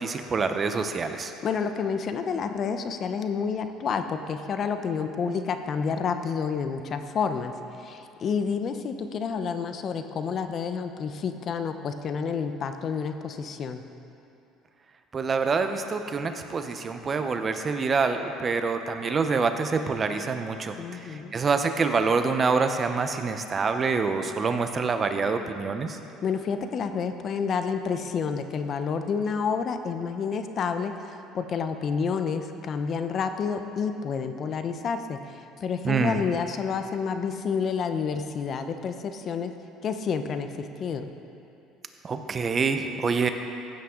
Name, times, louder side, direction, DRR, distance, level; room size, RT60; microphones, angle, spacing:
voice 1, 0.0-1.3 15.1-26.0 35.8-36.2 42.0-43.3, right 4 dB, 30° right, 7 dB, 0.8 m, -26 dB
voice 2, 1.4-7.5 7.8-13.8 20.8-21.3 26.2-39.5 39.8-41.0, left 6 dB, 45° left, 8 dB, 0.7 m, -29 dB
15.5 x 8.7 x 3.8 m, 2.7 s
supercardioid pair, 100°, 0 cm